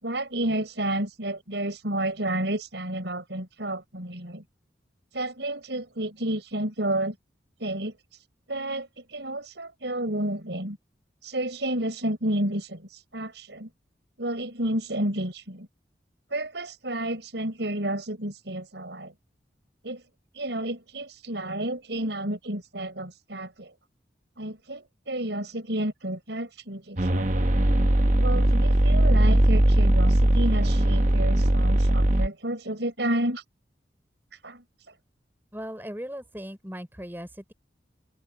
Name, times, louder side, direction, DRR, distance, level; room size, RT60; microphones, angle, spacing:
voice 1, 0.0-4.4 5.1-7.2 7.6-7.9 8.5-10.8 11.2-13.7 14.2-15.7 16.3-19.1 19.8-20.0 20.3-23.7 24.4-27.5 28.2-33.4 34.4-34.6, right 1 dB, 75° right, 4.7 m, -31 dB
sound 1, 27.0-32.3, right 1 dB, 40° right, 1.1 m, -20 dB
voice 2, 35.5-37.5, equal, 10° right, 3.8 m, -38 dB
head